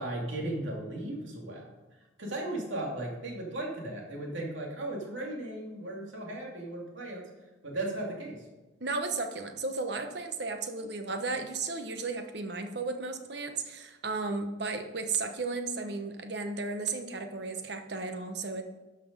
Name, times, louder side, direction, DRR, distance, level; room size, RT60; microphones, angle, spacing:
voice 1, 0.0-1.6 2.2-7.3 7.6-8.4, right 1 dB, 80° right, -1 dB, 2.7 m, -36 dB
voice 2, 8.8-18.6, right 3 dB, 60° right, 6 dB, 1.1 m, -34 dB
12.0 x 5.9 x 5.3 m, 1.1 s
head